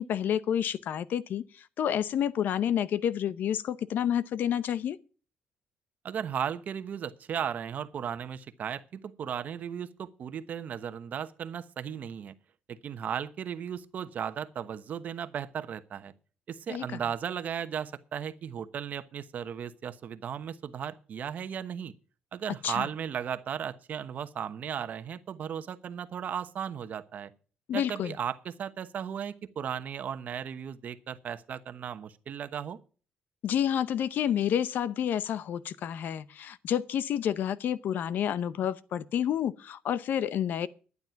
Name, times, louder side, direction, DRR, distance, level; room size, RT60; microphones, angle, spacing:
voice 1, 0.0-5.0 16.7-17.0 22.6-22.9 27.7-28.1 33.4-40.7, left 9 dB, 65° left, 0.7 m, -29 dB
voice 2, 6.0-12.3 12.7-16.1 16.5-21.9 22.3-27.3 27.7-32.8, right 8 dB, 50° right, 1.0 m, -36 dB
12.0 x 9.5 x 5.8 m
cardioid pair, 125°, 3 cm